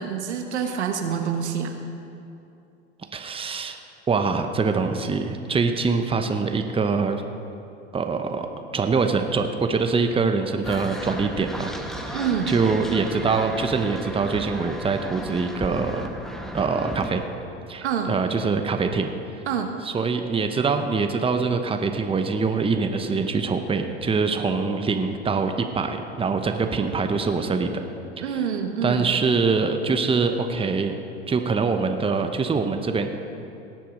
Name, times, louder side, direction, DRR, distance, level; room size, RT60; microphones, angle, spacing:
voice 1, 0.0-1.7 12.1-12.5 17.8-18.1 19.5-19.8 28.2-29.2, right 7 dB, 85° right, 5 dB, 1.3 m, -27 dB
voice 2, 3.1-3.8 4.1-7.2 7.9-8.5 8.7-11.7 12.1-12.2 12.5-16.1 16.5-17.2 17.7-19.1 19.8-27.7 28.3-28.4 28.8-31.0 31.3-33.1, right 4 dB, 15° right, 6 dB, 1.0 m, -24 dB
sound 1, 10.6-17.1, equal, ahead, 1.2 m, -34 dB
18.0 x 7.5 x 5.2 m, 2.7 s
hypercardioid pair, 85°, 33 cm